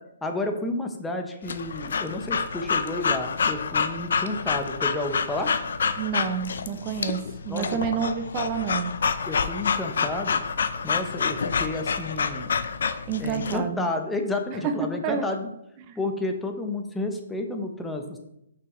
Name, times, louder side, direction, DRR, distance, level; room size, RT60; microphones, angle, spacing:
voice 1, 0.2-5.5 7.5-7.7 9.3-10.4 10.8-12.5 13.2-15.5 16.0-18.2, left 2 dB, 5° left, 3 dB, 0.7 m, -31 dB
Breathing / Dog, 1.5-13.6, left 6 dB, 70° left, 0.5 m, -28 dB
voice 2, 6.0-8.9 13.1-13.9 14.6-15.3 15.9-16.0, right 6 dB, 25° right, 8 dB, 0.5 m, -29 dB
6.0 x 5.7 x 3.0 m, 0.81 s
hypercardioid pair, 155°, 0 cm